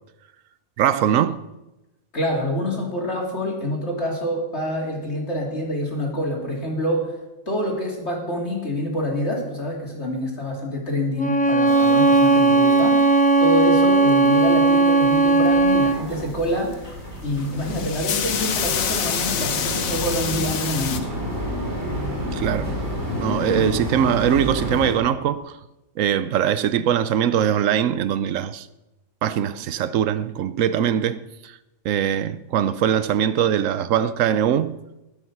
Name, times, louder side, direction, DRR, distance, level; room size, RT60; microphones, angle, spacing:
voice 1, 0.8-1.4 22.3-22.8 23.2-25.5 26.0-28.7 29.2-31.6 31.8-34.8, right 9 dB, 70° right, 1.0 m, -22 dB
voice 2, 2.1-7.1 7.5-13.1 13.4-16.9 17.2-21.1, left 1 dB, 50° left, 3.3 m, -26 dB
Bowed string instrument, 11.2-16.0, right 3 dB, 10° left, 0.4 m, -17 dB
sound 1, 11.7-12.8 14.1-14.6 16.7-17.0 17.3-21.0, left 7 dB, 80° left, 1.4 m, -27 dB
sound 2, 15.0-25.0, equal, 50° right, 3.6 m, -30 dB
20.0 x 7.1 x 6.0 m
omnidirectional pair, 1.4 m